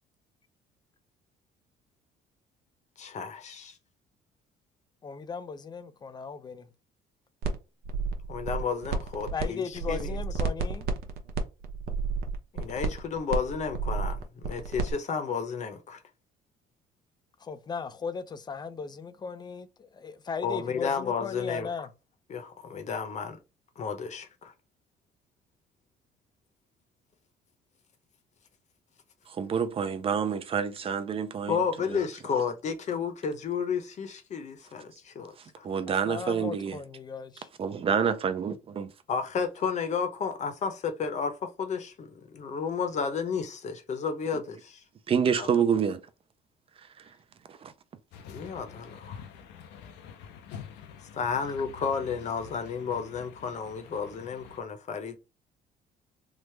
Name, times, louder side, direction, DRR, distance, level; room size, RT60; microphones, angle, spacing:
voice 1, 3.0-3.8 8.3-10.2 12.5-16.0 20.4-21.7 22.3-23.4 23.8-24.5 31.5-35.7 39.1-44.8 45.4-45.5 48.3-49.2 51.1-55.2, left 6 dB, 45° left, 0.8 m, -32 dB
voice 2, 5.0-6.7 9.3-10.9 17.4-21.9 35.9-37.5 51.4-51.5, left 5 dB, 25° left, 0.4 m, -37 dB
sound 1, 7.4-7.6 7.9-9.5 9.7-14.9, right 5 dB, 65° right, 0.7 m, -31 dB
voice 3, 29.4-31.6 31.9-32.0 35.6-36.8 37.6-38.9 45.1-46.0 47.5-47.7, right 7 dB, 35° right, 0.5 m, -27 dB
sound 2, 48.1-54.6, left 7 dB, 85° left, 0.5 m, -47 dB
3.3 x 2.0 x 3.2 m
cardioid pair, 110°, 17 cm